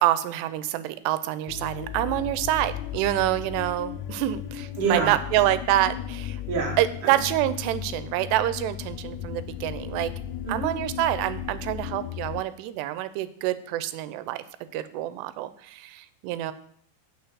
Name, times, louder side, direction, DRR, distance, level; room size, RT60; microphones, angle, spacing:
voice 1, 0.0-6.4 6.8-10.1 10.5-14.4 14.7-16.5, right 14 dB, 85° right, 13 dB, 2.7 m, -27 dB
sound 1, 1.5-12.4, left 10 dB, 85° left, 2.6 m, -35 dB
voice 2, 4.8-5.1 6.5-7.2 10.4-10.7, right 5 dB, 55° right, -1 dB, 1.5 m, -27 dB
6.1 x 5.7 x 6.7 m, 0.64 s
omnidirectional pair, 4.8 m